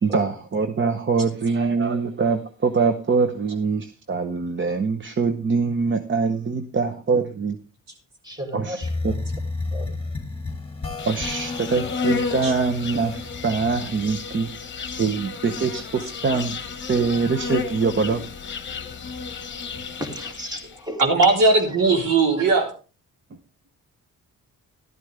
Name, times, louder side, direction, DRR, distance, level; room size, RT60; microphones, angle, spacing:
voice 1, 0.0-7.6 8.5-9.1 11.1-14.5 15.0-16.6 16.9-18.2, right 4 dB, 35° right, 7 dB, 0.8 m, -23 dB
voice 2, 8.2-9.3 9.7-9.9 19.9-21.0, equal, 10° right, 3 dB, 2.4 m, -35 dB
sound 1, 8.8-14.1, left 3 dB, 20° left, 1.9 m, -32 dB
Insect, 11.0-20.8, left 5 dB, 35° left, 1.1 m, -32 dB
voice 3, 21.0-22.7, right 3 dB, 80° right, 1 dB, 3.8 m, -18 dB
13.0 x 12.0 x 3.3 m, 0.34 s
wide cardioid pair, 150°, 33 cm